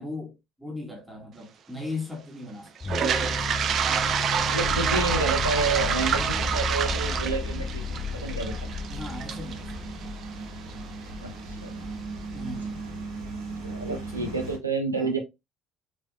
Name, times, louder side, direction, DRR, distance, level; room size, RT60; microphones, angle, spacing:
voice 1, 0.0-3.6 8.9-10.1 12.3-12.9 13.9-14.4 14.9-15.2, left 2 dB, 5° right, 1.7 m, -39 dB
sound 1, 2.8-10.0, left 4 dB, 25° left, 0.3 m, -33 dB
Toilet flush, 2.8-10.7, right 8 dB, 45° right, 0.5 m, -28 dB
voice 2, 4.4-8.6 11.2-11.8 13.6-15.2, right 3 dB, 85° right, 0.7 m, -29 dB
sound 2, 4.7-14.6, right 1 dB, 65° right, 1.7 m, -38 dB
5.2 x 3.3 x 2.2 m
figure-of-eight pair, 55°, 0 cm